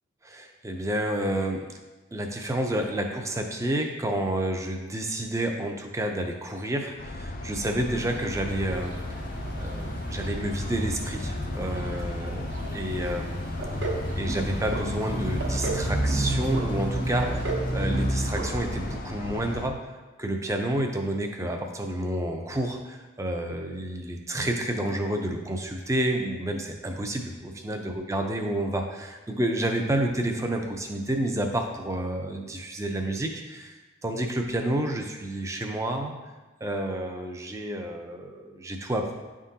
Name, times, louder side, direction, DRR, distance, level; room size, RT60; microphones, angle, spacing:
voice 1, 0.2-1.7 2.1-9.2 9.5-13.4 14.2-19.8 20.2-36.1 36.6-39.1, right 1 dB, 15° right, 3 dB, 0.5 m, -30 dB
sound 1, 7.0-19.7, left 2 dB, 45° left, 0.4 m, -36 dB
sound 2, 8.1-19.0, right 1 dB, 35° right, 1.2 m, -32 dB
sound 3, 13.6-14.0 14.3-14.8 15.2-15.8 16.1-16.7 17.0-17.6 17.9-18.1 18.4-18.5 18.8-18.9, right 3 dB, 60° right, 1.0 m, -32 dB
10.0 x 3.7 x 2.8 m, 1.2 s
head